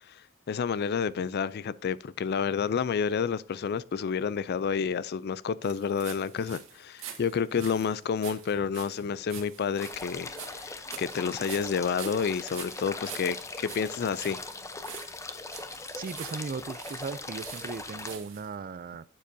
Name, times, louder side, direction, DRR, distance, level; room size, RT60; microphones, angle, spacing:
voice 1, 0.0-13.4 13.6-14.4, left 6 dB, 55° left, 0.4 m, -30 dB
sound 1, 5.6-18.5, right 8 dB, 80° right, 2.0 m, -46 dB
sound 2, 9.8-18.2, left 3 dB, 15° left, 0.7 m, -40 dB
voice 2, 16.0-19.0, right 4 dB, 45° right, 0.4 m, -37 dB
11.5 x 7.5 x 2.7 m
head